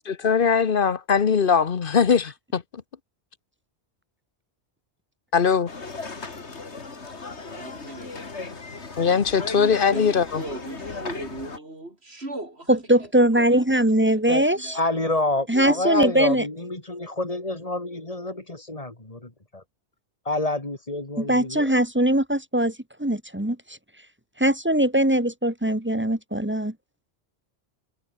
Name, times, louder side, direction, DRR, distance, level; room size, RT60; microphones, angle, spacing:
voice 1, 0.0-2.6 5.3-5.7 9.0-10.4, left 6 dB, 55° left, 1.2 m, -21 dB
sound 1, 5.7-11.6, left 4 dB, 80° left, 2.7 m, -37 dB
voice 2, 7.4-8.1 9.5-13.1 13.4-13.5 13.7-15.1 15.5-16.3, right 2 dB, 70° right, 6.2 m, -39 dB
voice 3, 12.7-14.8 15.5-16.4 21.2-23.8 24.4-26.7, right 1 dB, 10° right, 1.6 m, -21 dB
voice 4, 14.7-19.6 20.3-21.7, left 2 dB, 35° left, 3.6 m, -28 dB
omnidirectional pair, 1.1 m